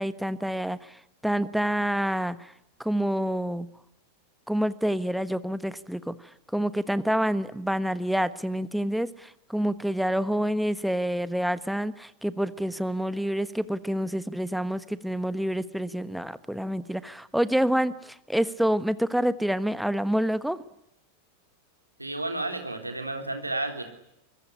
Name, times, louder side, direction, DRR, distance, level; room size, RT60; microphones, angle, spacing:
voice 1, 0.0-2.5 2.8-3.7 4.5-6.1 6.5-20.6, equal, ahead, 14 dB, 1.3 m, -27 dB
voice 2, 22.0-23.8, right 2 dB, 85° right, 5 dB, 3.6 m, -31 dB
25.5 x 22.5 x 9.9 m, 0.80 s
figure-of-eight pair, 90°, 0 cm